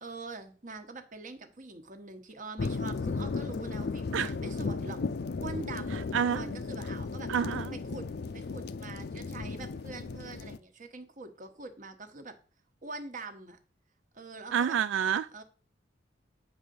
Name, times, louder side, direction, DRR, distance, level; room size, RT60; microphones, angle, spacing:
voice 1, 0.0-5.0 5.4-7.3 7.9-8.1 8.3-12.4 12.8-13.6 14.1-14.8 15.3-15.4, right 3 dB, 45° right, 1.2 m, -44 dB
sound 1, 2.6-10.6, left 4 dB, 60° left, 0.5 m, -35 dB
voice 2, 5.9-6.5 7.3-7.8 14.5-15.3, right 8 dB, 85° right, 0.3 m, -29 dB
8.8 x 3.8 x 6.9 m
head